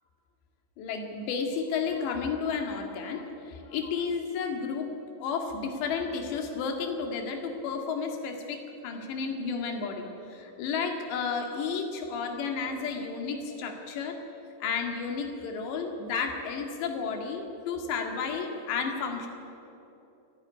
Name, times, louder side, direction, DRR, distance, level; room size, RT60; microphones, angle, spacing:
voice 1, 0.8-3.2 3.7-4.9 5.2-14.2 14.6-19.3, left 5 dB, 65° left, 3 dB, 4.1 m, -32 dB
29.0 x 11.0 x 9.9 m, 2.9 s
omnidirectional pair, 5.6 m